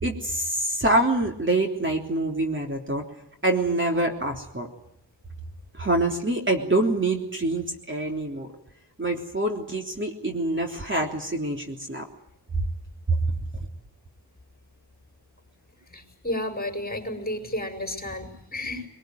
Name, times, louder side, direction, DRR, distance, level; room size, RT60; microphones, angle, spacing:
voice 1, 0.0-3.0 3.4-4.7 5.7-8.5 9.0-12.0, right 2 dB, 25° right, 2 dB, 3.4 m, -25 dB
voice 2, 15.9-18.9, left 1 dB, 20° left, 5 dB, 6.1 m, -32 dB
22.5 x 22.5 x 9.3 m, 0.75 s
cardioid pair, 75°, 42 cm